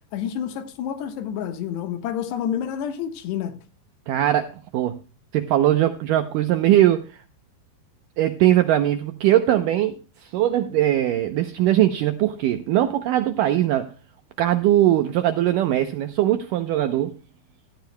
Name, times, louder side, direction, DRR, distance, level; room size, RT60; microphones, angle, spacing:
voice 1, 0.1-3.6, left 9 dB, 85° left, 3.5 m, -29 dB
voice 2, 4.1-5.0 5.3-7.2 8.2-13.9 14.4-17.2, right 13 dB, 85° right, 1.9 m, -20 dB
16.0 x 14.0 x 2.2 m
omnidirectional pair, 4.7 m